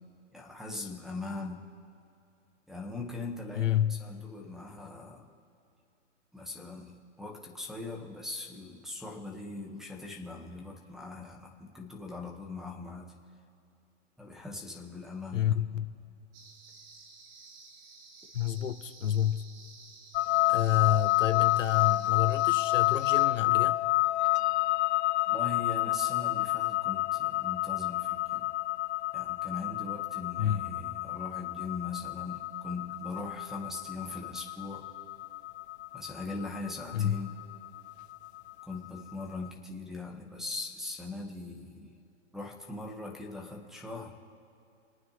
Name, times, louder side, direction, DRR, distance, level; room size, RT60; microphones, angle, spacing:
voice 1, 0.3-1.7 2.7-5.3 6.3-13.1 14.2-15.4 25.3-28.5 29.1-34.9 35.9-37.3 38.6-42.0 42.3-44.2, left 3 dB, ahead, 1 dB, 1.7 m, -40 dB
voice 2, 3.5-4.0 15.3-15.9 18.3-19.4 20.5-23.8 30.4-30.7 36.9-37.2, left 11 dB, 85° left, 9 dB, 1.1 m, -29 dB
sound 1, 16.3-23.3, right 4 dB, 50° right, 2.0 m, -53 dB
sound 2, 20.1-39.2, left 18 dB, 60° left, 0.5 m, -29 dB
27.5 x 9.3 x 3.4 m, 2.7 s
hypercardioid pair, 135°, 37 cm